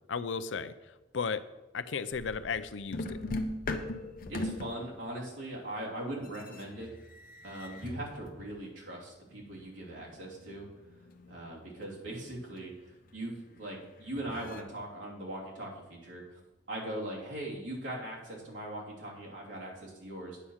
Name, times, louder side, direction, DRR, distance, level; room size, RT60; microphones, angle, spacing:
voice 1, 0.1-0.7 1.1-1.4 1.7-3.2, left 5 dB, 80° left, 13 dB, 0.5 m, -34 dB
sound 1, 2.1-2.6 2.9-5.6 6.1-8.6 9.6-14.6, left 2 dB, 50° left, 0.8 m, -41 dB
voice 2, 4.3-6.9 7.4-10.7 11.3-12.7 13.1-16.4 16.7-20.4, right 1 dB, 85° right, -4 dB, 3.2 m, -40 dB
9.0 x 6.4 x 5.7 m, 1.0 s
head